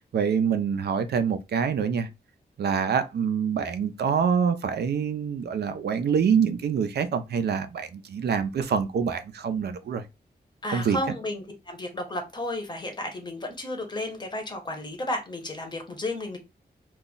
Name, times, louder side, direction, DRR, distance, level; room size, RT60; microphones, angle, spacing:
voice 1, 0.1-2.1 2.6-10.0 10.7-11.0, right 7 dB, 75° right, 0.4 m, -25 dB
voice 2, 10.6-16.4, left 1 dB, 25° left, 0.7 m, -33 dB
2.3 x 2.0 x 3.7 m
wide cardioid pair, 170°, 17 cm